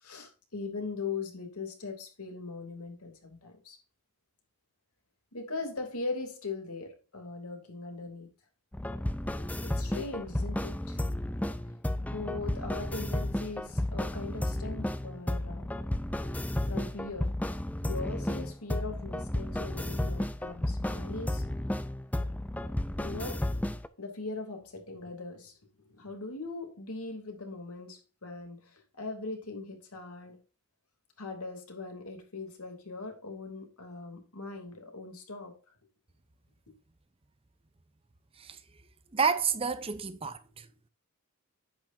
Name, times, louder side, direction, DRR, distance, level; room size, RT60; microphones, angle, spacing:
voice 1, 0.0-3.8 5.3-8.3 9.6-11.0 12.0-15.7 16.6-17.3 17.8-21.4 23.0-23.5 24.0-25.6 25.9-30.4 31.2-35.6, left 3 dB, 80° left, 2.8 m, -40 dB
sound 1, 8.7-23.9, left 1 dB, 5° left, 0.5 m, -33 dB
voice 2, 39.1-40.7, right 6 dB, 25° right, 0.7 m, -30 dB
10.5 x 8.6 x 2.7 m
head